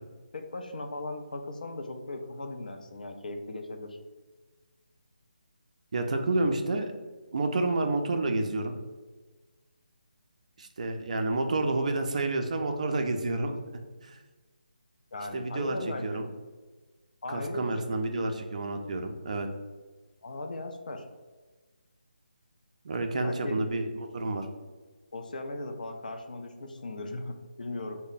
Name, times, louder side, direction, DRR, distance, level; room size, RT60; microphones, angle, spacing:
voice 1, 0.3-4.0 15.1-16.3 17.2-18.0 20.2-21.0 23.2-23.6 25.1-28.0, left 2 dB, 60° left, 5 dB, 0.5 m, -38 dB
voice 2, 5.9-7.0 7.3-8.7 10.6-13.6 14.0-14.2 15.3-16.2 17.3-19.5 22.8-24.5, right 2 dB, 45° right, 5 dB, 0.4 m, -29 dB
3.0 x 2.1 x 4.0 m, 1.3 s
figure-of-eight pair, 150°, 5 cm